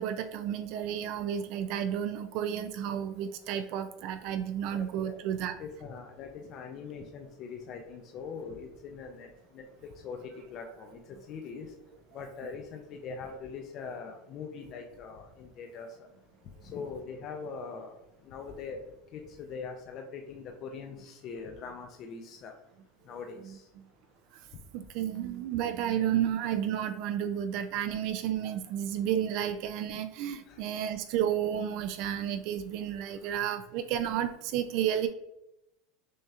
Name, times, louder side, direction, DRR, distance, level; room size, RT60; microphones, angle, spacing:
voice 1, 0.0-5.5 23.8-23.9 24.7-35.1, right 10 dB, 55° right, 9 dB, 0.3 m, -32 dB
voice 2, 4.7-5.2 5.6-9.7 10.0-11.0 11.3-11.7 12.1-15.9 16.6-18.0 18.3-22.5 23.1-23.6 30.5-30.6 33.2-33.3, left 5 dB, 40° left, 3 dB, 0.5 m, -42 dB
6.2 x 2.8 x 2.4 m, 0.87 s
supercardioid pair, 145°, 0 cm